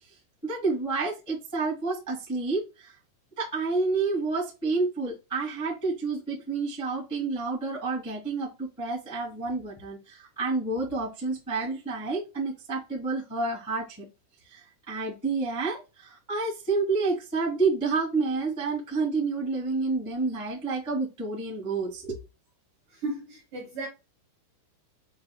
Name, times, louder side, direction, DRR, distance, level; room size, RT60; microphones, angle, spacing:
voice 1, 0.4-2.9 3.4-14.0 14.5-22.2, right 3 dB, 20° right, 0.5 m, -29 dB
voice 2, 23.0-23.9, right 2 dB, 65° right, 2.1 m, -34 dB
8.0 x 2.7 x 2.3 m
omnidirectional pair, 5.9 m